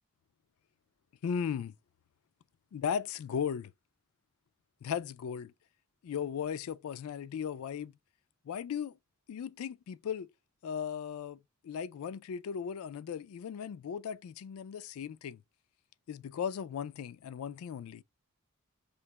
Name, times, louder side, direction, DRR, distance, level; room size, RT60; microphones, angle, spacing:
voice 1, 1.2-1.7 2.7-3.7 4.8-5.5 6.0-7.9 8.5-9.0 9.3-10.3 10.6-15.4 16.1-18.0, left 7 dB, 85° left, 0.3 m, -37 dB
3.2 x 2.9 x 4.5 m
head